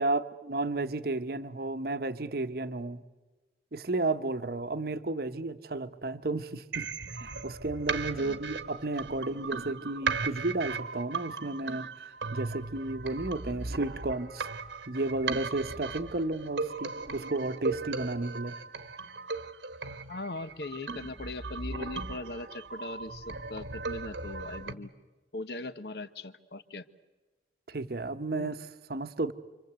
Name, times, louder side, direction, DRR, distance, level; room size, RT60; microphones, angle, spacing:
voice 1, 0.0-3.0 3.7-6.9 7.2-11.9 12.3-14.5 14.9-18.6 27.7-29.3, right 2 dB, 55° right, 11 dB, 1.0 m, -33 dB
sound 1, 6.7-24.7, right 4 dB, 80° right, 1.3 m, -37 dB
voice 2, 20.1-24.9 25.3-26.8 28.3-28.5, left 2 dB, 60° left, 12 dB, 1.1 m, -40 dB
29.0 x 25.0 x 8.1 m, 1.2 s
head